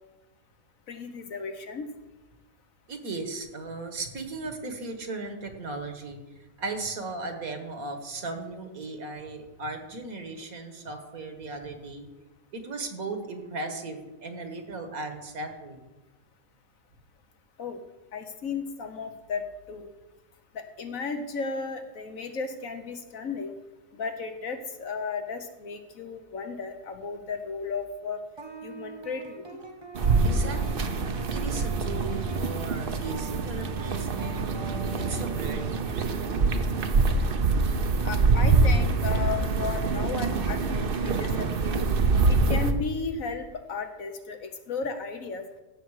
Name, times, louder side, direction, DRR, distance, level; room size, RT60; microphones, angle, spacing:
voice 1, 0.9-1.9 17.6-17.8 18.1-19.9 20.5-23.5 23.9-28.2 28.6-29.4 38.0-41.9 42.3-45.4, left 4 dB, 60° left, 6 dB, 1.3 m, -34 dB
voice 2, 2.9-6.2 6.6-12.1 12.5-15.9 30.2-30.9 31.3-34.4 35.0-36.1, right 3 dB, 65° right, 6 dB, 1.8 m, -37 dB
sound 1, 28.4-35.8, right 2 dB, 20° right, 1.0 m, -43 dB
sound 2, 29.9-42.7, right 3 dB, 45° right, 0.7 m, -25 dB
16.0 x 6.7 x 4.8 m, 1.1 s
omnidirectional pair, 1.7 m